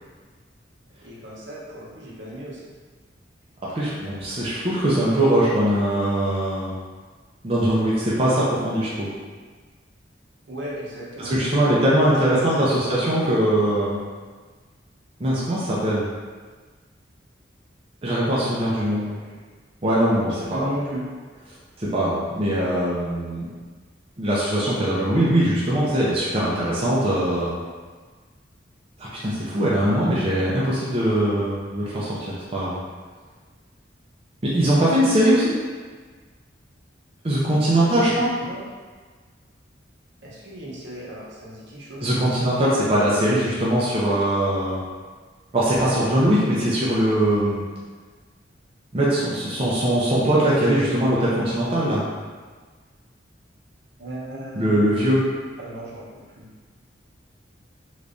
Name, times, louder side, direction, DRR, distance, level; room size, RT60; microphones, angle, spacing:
voice 1, 1.0-2.6 10.5-11.3 12.4-12.5 12.9-13.1 18.7-19.4 20.5-21.0 37.5-38.6 40.2-42.1 54.0-54.8 55.6-56.5, right 1 dB, 65° right, -6 dB, 0.8 m, -36 dB
voice 2, 3.7-6.8 7.4-9.1 11.2-14.0 15.2-16.1 18.0-19.0 19.8-20.7 21.8-23.4 24.2-27.6 29.0-32.8 34.4-35.5 37.2-38.3 42.0-44.8 45.5-47.6 48.9-52.0 54.6-55.2, right 1 dB, 30° right, -7 dB, 0.5 m, -21 dB
3.4 x 3.0 x 2.6 m, 1.5 s
head